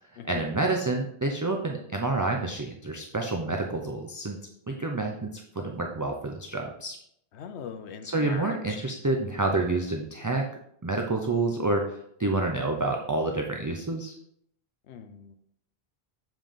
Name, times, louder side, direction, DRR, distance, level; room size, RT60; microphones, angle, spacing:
voice 1, 0.3-4.4 4.7-7.0 8.0-10.5 10.8-14.1, right 2 dB, 25° right, 2 dB, 0.5 m, -28 dB
voice 2, 7.4-8.6 14.9-15.3, left 7 dB, 80° left, 7 dB, 1.0 m, -40 dB
7.3 x 5.1 x 3.8 m, 0.71 s
omnidirectional pair, 1.1 m